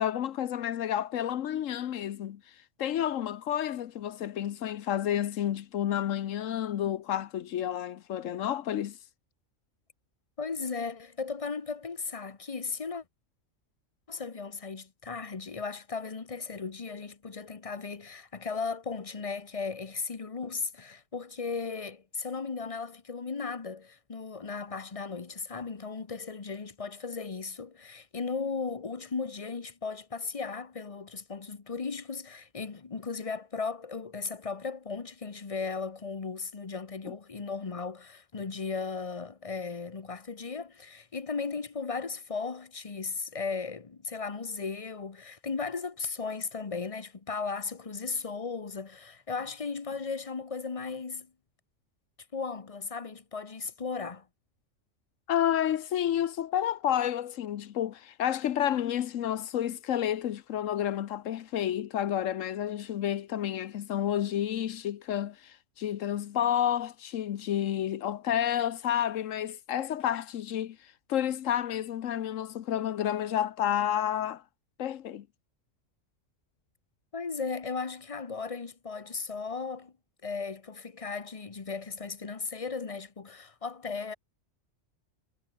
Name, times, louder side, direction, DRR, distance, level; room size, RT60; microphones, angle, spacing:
voice 1, 0.0-2.4 2.8-9.0 37.0-37.1 55.3-70.8 71.1-74.4 74.8-75.3, left 10 dB, 85° left, 1.2 m, -30 dB
voice 2, 10.4-13.0 14.1-51.3 52.3-54.3 77.1-79.9 80.2-84.1, left 4 dB, 30° left, 1.0 m, -36 dB
omnidirectional pair, 1.3 m